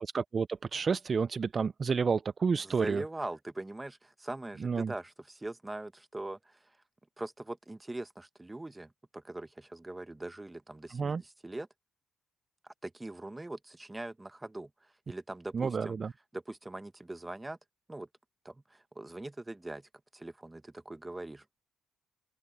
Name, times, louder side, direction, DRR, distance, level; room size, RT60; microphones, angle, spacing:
voice 1, 0.0-3.0 4.6-4.9 10.9-11.2 15.5-16.1, right 5 dB, 40° right, 0.3 m, -30 dB
voice 2, 2.6-6.7 7.2-11.7 12.6-16.0 16.3-17.6 17.9-18.1 18.4-21.4, right 2 dB, 15° right, 1.2 m, -42 dB
open air
cardioid pair, 90°, 0 cm